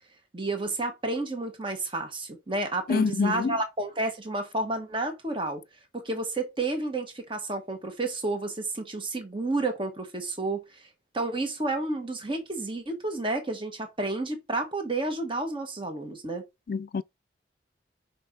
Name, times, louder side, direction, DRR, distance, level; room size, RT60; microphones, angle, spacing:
voice 1, 0.3-5.6 5.9-10.6 11.1-16.4, right 2 dB, 30° right, 1.5 m, -31 dB
voice 2, 2.9-3.6 16.7-17.0, left 5 dB, 50° left, 0.3 m, -26 dB
5.7 x 5.4 x 3.9 m
head